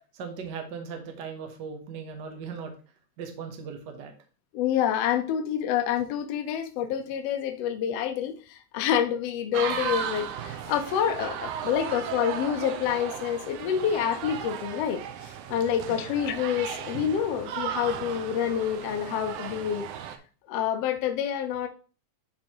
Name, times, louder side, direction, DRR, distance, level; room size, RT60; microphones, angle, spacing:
voice 1, 0.1-2.7 3.2-4.1 15.9-16.0, right 6 dB, 65° right, 4 dB, 1.0 m, -38 dB
voice 2, 4.5-19.9 20.5-21.7, left 9 dB, 75° left, 5 dB, 1.5 m, -28 dB
sound 1, 9.5-20.2, right 8 dB, 85° right, 2.1 m, -35 dB
10.5 x 4.5 x 2.9 m, 0.36 s
omnidirectional pair, 3.5 m